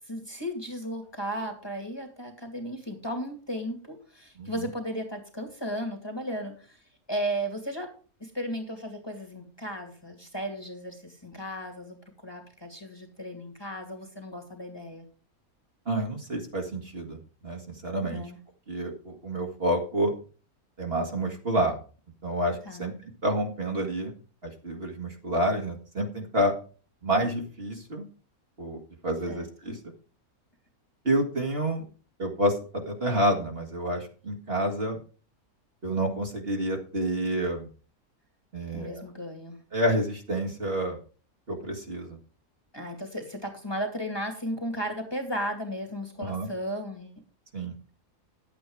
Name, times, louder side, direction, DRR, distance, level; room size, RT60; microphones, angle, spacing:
voice 1, 0.1-6.8 7.1-7.9 8.2-12.0 12.2-15.0 18.1-18.4 22.7-22.9 29.3-29.7 38.7-39.6 42.7-47.2, equal, 15° left, 4 dB, 2.3 m, -35 dB
voice 2, 15.9-18.3 18.7-20.1 20.8-21.8 22.2-24.1 24.4-26.5 27.0-28.0 28.6-29.8 31.0-31.9 32.2-35.0 35.8-37.7 38.5-39.0 39.7-41.0 41.5-42.2 46.2-46.5 47.5-47.8, right 1 dB, 40° right, 1 dB, 2.2 m, -29 dB
11.0 x 8.8 x 4.7 m, 0.38 s
omnidirectional pair, 1.6 m